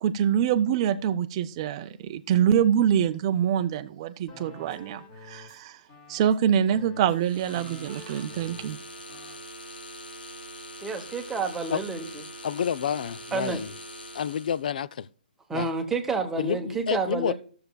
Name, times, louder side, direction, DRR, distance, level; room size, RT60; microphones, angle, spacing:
voice 1, 0.0-5.8 6.1-8.8, right 9 dB, 30° right, 0.4 m, -25 dB
sound 1, 4.3-5.6 5.9-8.8 9.1-9.4, left 1 dB, 20° left, 1.8 m, -48 dB
sound 2, 7.2-14.7, equal, 85° left, 1.1 m, -43 dB
voice 2, 10.8-12.2 13.3-13.6 15.5-17.3, right 4 dB, 5° right, 0.9 m, -29 dB
voice 3, 12.4-13.7 14.1-15.1 15.5-15.7 16.4-17.3, left 8 dB, 60° left, 0.4 m, -29 dB
15.0 x 6.7 x 2.3 m
hypercardioid pair, 160°, 5 cm